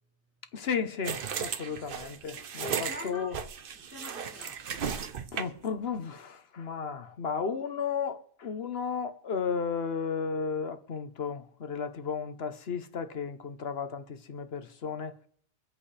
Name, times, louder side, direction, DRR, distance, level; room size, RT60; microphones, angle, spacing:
voice 1, 0.5-3.4 5.3-15.2, left 6 dB, 60° left, 1.2 m, -34 dB
sound 1, 1.0-5.7, right 7 dB, 55° right, 0.9 m, -35 dB
voice 2, 2.4-3.3 3.8-4.8, left 2 dB, 10° right, 3.6 m, -45 dB
24.5 x 8.2 x 3.4 m
omnidirectional pair, 1.2 m